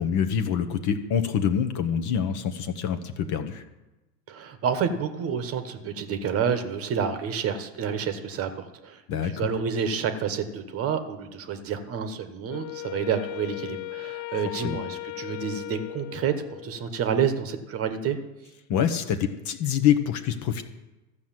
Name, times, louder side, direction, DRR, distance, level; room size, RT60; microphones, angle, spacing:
voice 1, 0.0-3.6 9.1-9.5 14.5-14.8 18.7-20.6, left 8 dB, 35° left, 7 dB, 1.1 m, -26 dB
voice 2, 4.3-18.2, right 7 dB, 30° right, 9 dB, 1.2 m, -29 dB
Wind instrument woodwind instrument, 12.5-16.9, left 18 dB, 60° left, 0.5 m, -37 dB
13.5 x 6.5 x 7.5 m, 1.0 s
hypercardioid pair, 115°, 48 cm